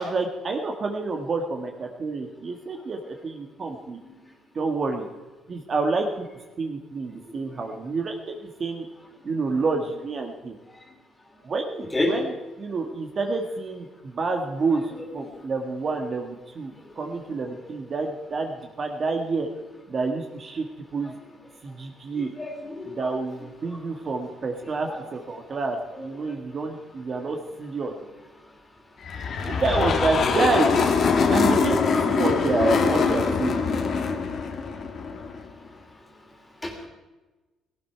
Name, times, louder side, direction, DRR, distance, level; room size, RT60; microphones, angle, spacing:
voice 1, 0.0-4.0 4.5-5.1 5.5-6.3 6.6-8.8 9.2-10.5 11.4-14.8 15.1-19.5 19.9-20.6 20.9-21.1 21.6-22.3 22.8-27.9 29.5-30.9 31.3-33.8, right 3 dB, 35° right, 3 dB, 1.6 m, -28 dB
voice 2, 22.2-22.9 24.9-25.0 31.9-32.1 32.5-32.6 36.6-36.9, left 2 dB, 15° left, 2 dB, 3.1 m, -29 dB
sound 1, 29.0-35.5, left 5 dB, 45° left, 1.8 m, -23 dB
18.0 x 17.0 x 4.6 m, 1.2 s
cardioid pair, 140°, 0 cm